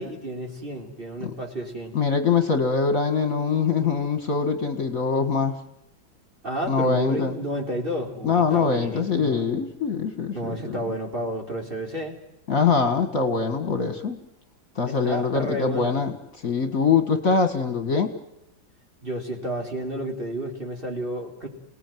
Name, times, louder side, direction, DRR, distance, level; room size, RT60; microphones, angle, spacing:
voice 1, 0.0-1.9 6.4-9.6 10.3-12.2 14.9-16.0 19.0-21.5, right 1 dB, 25° right, 2 dB, 4.3 m, -31 dB
voice 2, 1.9-5.6 6.7-7.4 8.2-10.8 12.5-14.2 14.8-18.1, left 5 dB, 45° left, 7 dB, 2.2 m, -23 dB
29.0 x 19.0 x 9.3 m, 0.90 s
omnidirectional pair, 2.0 m